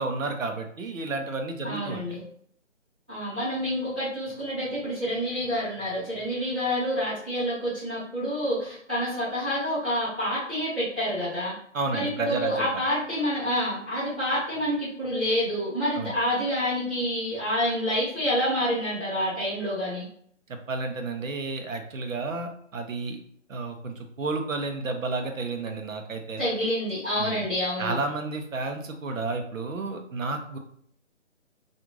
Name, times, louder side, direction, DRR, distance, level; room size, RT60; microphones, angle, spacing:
voice 1, 0.0-2.0 11.7-12.7 15.9-16.1 20.5-23.2 23.5-26.4 27.2-27.5 27.8-30.6, right 3 dB, 85° right, 5 dB, 0.7 m, -31 dB
voice 2, 1.6-2.2 3.1-11.5 11.9-20.0 26.4-28.0, equal, 10° right, -16 dB, 0.6 m, -28 dB
2.5 x 2.4 x 3.0 m, 0.64 s
figure-of-eight pair, 160°, 38 cm